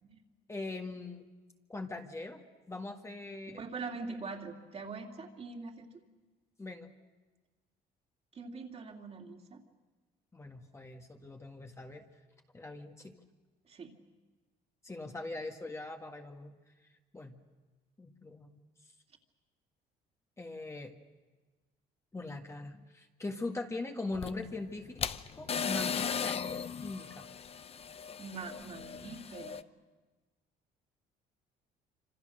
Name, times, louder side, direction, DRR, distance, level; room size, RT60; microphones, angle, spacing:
voice 1, 0.5-1.2 1.7-4.0 6.6-6.9 10.3-12.1 12.5-13.1 14.8-16.5 17.1-17.4 18.0-18.6 20.4-20.9 22.1-25.0 25.3-27.2, left 2 dB, 15° left, 3 dB, 1.7 m, -41 dB
voice 2, 3.6-5.9 8.3-9.6 13.7-13.9 28.2-29.6, right 4 dB, 40° right, 2 dB, 2.9 m, -43 dB
sound 1, 24.1-29.6, left 6 dB, 35° left, 0.8 m, -37 dB
26.5 x 26.5 x 6.6 m, 1.2 s
cardioid pair, 110°, 17 cm